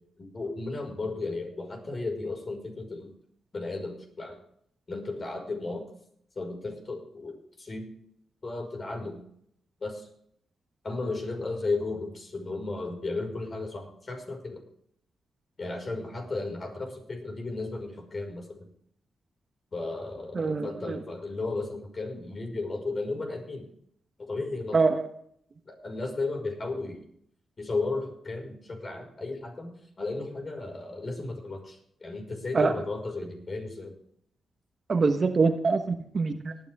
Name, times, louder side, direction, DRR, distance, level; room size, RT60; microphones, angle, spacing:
voice 1, 0.2-3.1 3.5-4.4 4.9-5.9 6.4-7.9 8.4-9.2 9.8-10.1 10.8-14.6 15.6-18.6 19.7-23.7 24.2-24.8 25.6-27.0 27.6-29.7 30.0-34.0, left 3 dB, 45° left, 2 dB, 5.5 m, -34 dB
voice 2, 20.3-21.0 24.7-25.1 32.5-32.7 34.9-36.6, right 4 dB, 50° right, 7 dB, 1.2 m, -24 dB
18.5 x 10.0 x 3.7 m, 0.67 s
cardioid pair, 65°, 0 cm